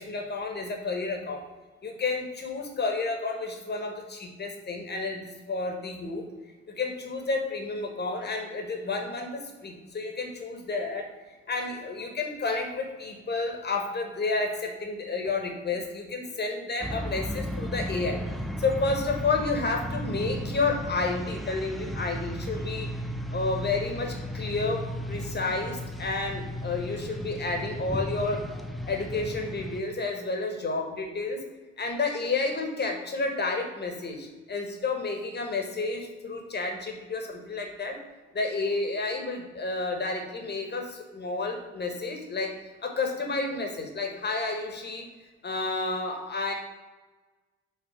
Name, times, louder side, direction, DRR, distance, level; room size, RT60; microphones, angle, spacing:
voice 1, 0.0-1.4 1.8-6.2 6.7-11.0 11.5-18.2 18.6-22.9 23.3-28.4 28.9-31.4 31.8-38.0 38.3-42.5 42.8-45.1 45.4-46.5, left 3 dB, 30° left, 3 dB, 1.4 m, -31 dB
sound 1, 16.8-29.8, equal, ahead, 0.5 m, -35 dB
6.9 x 3.8 x 4.9 m, 1.2 s
figure-of-eight pair, 45°, 34 cm